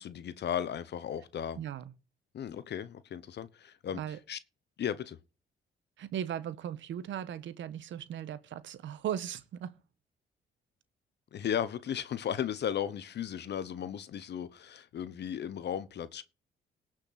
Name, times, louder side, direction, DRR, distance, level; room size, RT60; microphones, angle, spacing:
voice 1, 0.0-1.6 2.3-4.0 4.3-4.4 4.8-5.2 11.3-16.2, left 9 dB, 60° left, 0.9 m, -35 dB
voice 2, 1.5-1.9 3.9-4.2 6.0-9.7, right 10 dB, 70° right, 1.2 m, -37 dB
18.5 x 6.4 x 4.1 m
cardioid pair, 90°, 20 cm